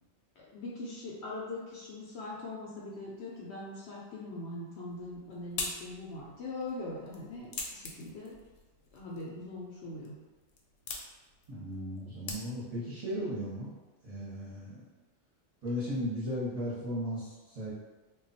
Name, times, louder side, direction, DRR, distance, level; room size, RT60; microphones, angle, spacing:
voice 1, 0.4-8.4 8.9-10.2, left 2 dB, 65° left, -4 dB, 0.8 m, -41 dB
sound 1, 4.9-12.9, left 4 dB, 90° left, 1.0 m, -44 dB
voice 2, 11.5-13.7 14.0-14.9 15.6-17.7, equal, 35° right, -10 dB, 0.8 m, -36 dB
2.3 x 2.2 x 3.9 m, 1.2 s
omnidirectional pair, 1.4 m